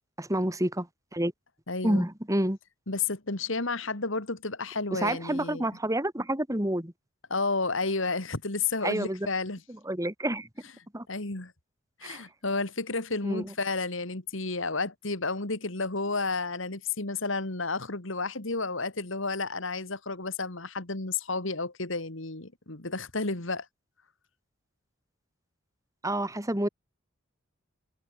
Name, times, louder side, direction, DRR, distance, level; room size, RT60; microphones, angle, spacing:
voice 1, 0.2-1.3 1.8-2.6 4.9-6.9 8.8-9.3 9.9-10.5 10.9-11.0 12.0-12.2 13.2-13.5 26.0-26.7, right 1 dB, 15° right, 3.3 m, -29 dB
voice 2, 1.7-2.1 2.9-5.7 7.3-9.6 11.1-11.5 12.0-23.7, left 3 dB, 65° left, 2.5 m, -31 dB
head